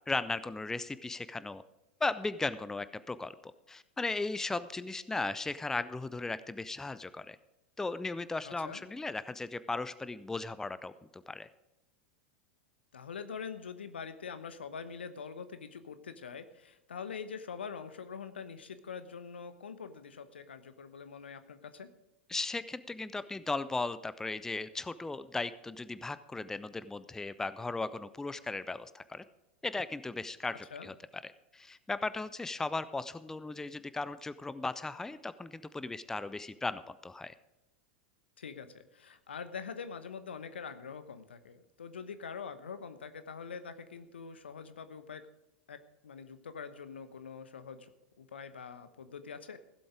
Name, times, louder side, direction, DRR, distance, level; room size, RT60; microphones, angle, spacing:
voice 1, 0.1-1.6 2.0-7.4 7.8-11.5 22.3-29.2 29.6-30.9 31.2-37.3, left 3 dB, 10° left, 15 dB, 0.5 m, -37 dB
voice 2, 8.4-8.8 12.9-21.9 30.7-30.9 38.4-45.3 45.7-45.8 46.0-49.6, left 6 dB, 75° left, 11 dB, 1.0 m, -44 dB
16.0 x 7.9 x 4.9 m, 0.96 s
figure-of-eight pair, 90°, 6 cm